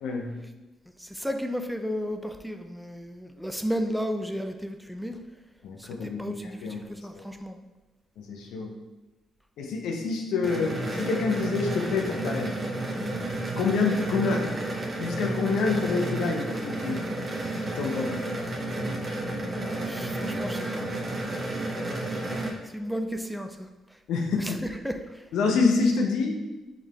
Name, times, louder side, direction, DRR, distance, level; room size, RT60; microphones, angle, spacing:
voice 1, 0.0-0.4 5.6-6.9 7.1-7.2 8.2-8.7 9.6-12.5 13.6-14.5 15.0-17.0 17.7-18.3 24.1-24.6 25.3-26.4, left 4 dB, 70° left, 3 dB, 0.6 m, -27 dB
voice 2, 1.0-5.2 5.8-7.6 19.8-20.9 22.7-23.7 24.4-25.2, equal, ahead, 6 dB, 0.4 m, -33 dB
sound 1, 10.4-22.5, right 1 dB, 40° right, 1.0 m, -31 dB
6.1 x 3.7 x 2.3 m, 1.1 s
hypercardioid pair, 40°, 0 cm